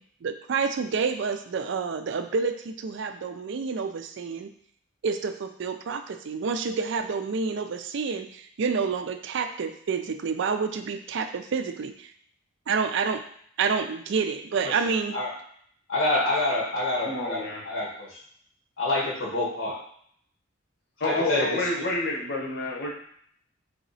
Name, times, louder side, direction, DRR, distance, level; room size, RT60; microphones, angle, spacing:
voice 1, 0.2-4.5 5.0-12.1 12.7-13.2 13.6-15.2, right 5 dB, 60° right, 8 dB, 0.4 m, -28 dB
voice 2, 15.9-18.2 18.8-19.8 21.0-21.7, left 2 dB, 90° left, -4 dB, 1.5 m, -27 dB
voice 3, 17.0-17.6 21.0-22.9, left 2 dB, 55° left, -1 dB, 0.9 m, -29 dB
3.5 x 2.9 x 4.0 m, 0.64 s
head